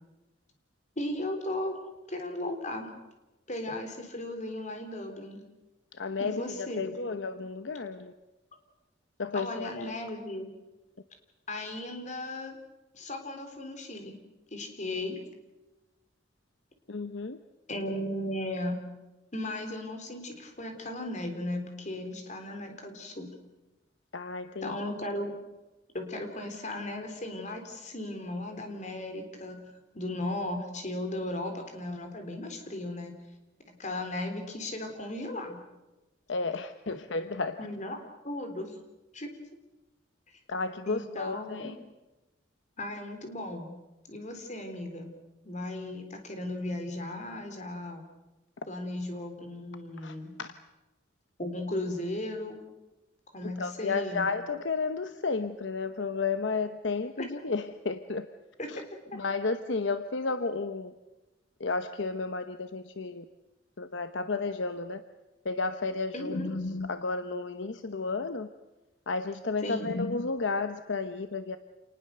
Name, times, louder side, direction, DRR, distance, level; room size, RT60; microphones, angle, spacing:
voice 1, 1.0-1.8 2.1-2.9 3.5-5.4 6.2-7.1 9.3-10.5 11.5-12.6 12.9-14.2 14.5-15.2 17.7-18.8 19.3-23.3 24.6-25.3 25.9-29.6 29.9-33.1 33.7-35.6 37.6-38.0 38.2-38.8 39.1-39.3 40.9-41.7 42.8-43.7 44.1-45.1 45.4-48.0 48.7-50.4 51.4-52.6 53.3-54.3 58.6-58.7 66.1-66.5 69.6-69.9, left 1 dB, 35° left, 5 dB, 3.6 m, -36 dB
voice 2, 5.9-8.1 9.2-9.9 16.9-17.4 24.1-24.7 36.3-37.6 40.5-41.7 50.0-50.5 53.4-58.3 58.7-58.8 59.1-61.0 61.6-63.3 63.8-65.0 65.4-68.5 69.1-71.6, left 4 dB, 65° left, 10 dB, 0.9 m, -32 dB
28.0 x 20.0 x 6.8 m, 1.1 s
head